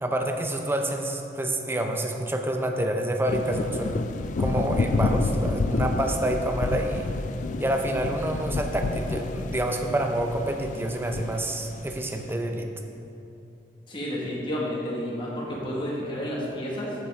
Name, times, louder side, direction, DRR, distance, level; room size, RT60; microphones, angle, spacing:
voice 1, 0.0-4.0 4.4-7.1 7.6-12.7, right 1 dB, 15° right, 4 dB, 0.5 m, -28 dB
sound 1, 3.3-12.3, left 3 dB, 45° left, 0.3 m, -29 dB
voice 2, 13.9-16.9, equal, 30° left, -4 dB, 1.6 m, -31 dB
9.1 x 7.6 x 3.5 m, 2.8 s
head